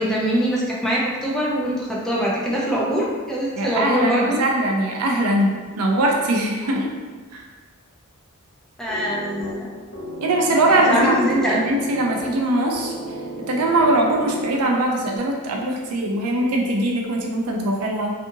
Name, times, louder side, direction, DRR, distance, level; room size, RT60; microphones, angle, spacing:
voice 1, 0.0-4.4 8.8-9.7 10.7-11.6, equal, ahead, -6 dB, 0.5 m, -23 dB
voice 2, 3.6-6.9 10.2-12.9 13.5-18.1, right 1 dB, 75° right, 0 dB, 0.5 m, -21 dB
sound 1, 8.9-14.8, equal, 70° left, 0.9 m, -34 dB
2.6 x 2.4 x 2.6 m, 1.4 s
head